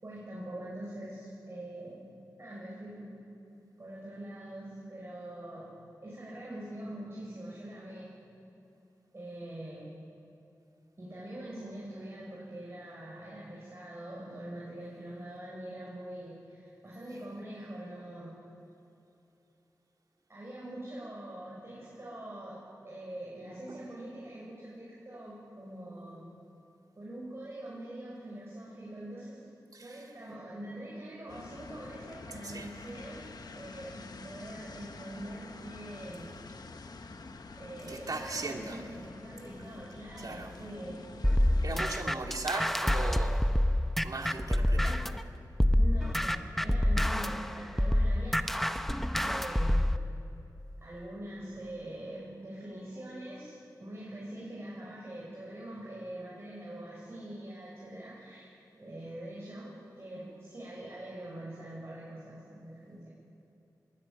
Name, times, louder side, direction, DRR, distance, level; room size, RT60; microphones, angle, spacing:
voice 1, 0.0-2.0 2.4-3.2 3.8-5.7 6.0-8.4 9.1-9.9 11.0-18.4 20.3-26.3 27.0-29.4 29.8-36.3 37.6-41.0 44.7-45.0 45.8-48.5 49.2-50.0 50.8-59.7 60.0-63.1, right 1 dB, 35° right, -6 dB, 5.9 m, -44 dB
voice 2, 29.7-30.1 32.4-32.7 37.9-38.8 40.2-40.5 41.6-43.5 44.0-45.0, right 3 dB, 60° right, 2 dB, 2.4 m, -38 dB
sound 1, 31.3-41.9, left 3 dB, 70° left, 1.2 m, -47 dB
sound 2, 41.2-45.2 45.6-50.0, left 1 dB, 5° left, 0.8 m, -27 dB
21.5 x 16.0 x 9.0 m, 2.9 s
wide cardioid pair, 85°, 7 cm